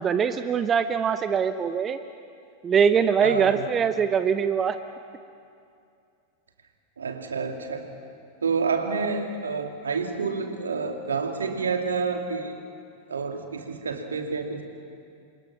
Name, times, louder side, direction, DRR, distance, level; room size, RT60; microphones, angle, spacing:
voice 1, 0.0-2.0 2.6-4.8, right 7 dB, 25° right, 10 dB, 0.9 m, -22 dB
voice 2, 3.2-3.6 7.0-7.9 8.4-12.6 13.1-14.6, right 5 dB, 70° right, 4 dB, 2.5 m, -28 dB
29.0 x 25.0 x 6.0 m, 2.5 s
figure-of-eight pair, 90°, 0 cm